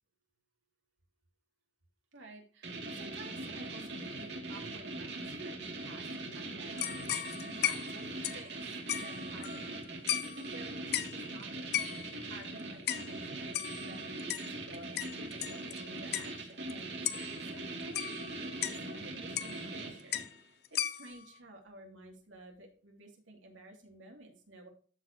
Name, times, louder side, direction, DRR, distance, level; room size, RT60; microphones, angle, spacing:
voice 1, 2.1-8.1 8.3-11.8 12.3-18.0 18.4-24.7, right 2 dB, 85° right, 1 dB, 2.6 m, -53 dB
sound 1, 2.6-20.4, right 2 dB, 60° right, 2.5 m, -41 dB
sound 2, 6.8-9.8 10.1-10.5 10.9-11.2 11.7-12.2 12.9-13.1 13.5-15.8 16.1-16.3 16.7-16.8 17.0-17.3 17.9-18.8 19.4-19.8 20.1-20.3 20.6-21.2, left 11 dB, 55° left, 0.5 m, -36 dB
13.5 x 4.7 x 2.9 m, 0.42 s
head